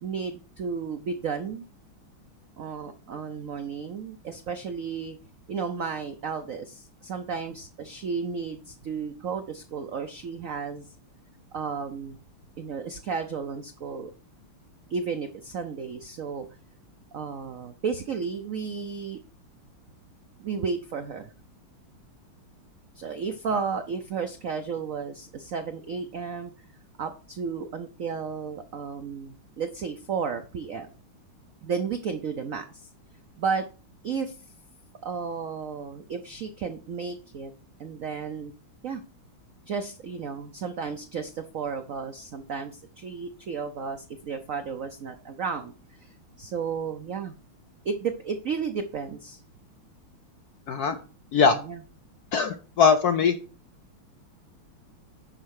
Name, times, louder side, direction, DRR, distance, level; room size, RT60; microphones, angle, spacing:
voice 1, 0.0-1.6 2.6-5.2 5.5-10.9 11.5-12.2 12.6-14.1 14.9-16.5 17.1-19.2 20.4-21.3 22.9-26.5 27.0-30.9 31.6-32.9 33.4-33.6 34.0-34.4 35.0-37.5 37.8-38.5 38.8-39.0 39.7-45.7 46.0-47.3 47.8-49.4 51.6-51.8, right 5 dB, 80° right, 8 dB, 0.7 m, -33 dB
voice 2, 50.7-51.0 51.3-51.6 52.3-53.4, left 5 dB, 70° left, 8 dB, 0.9 m, -21 dB
10.5 x 4.3 x 6.4 m, 0.36 s
omnidirectional pair, 2.4 m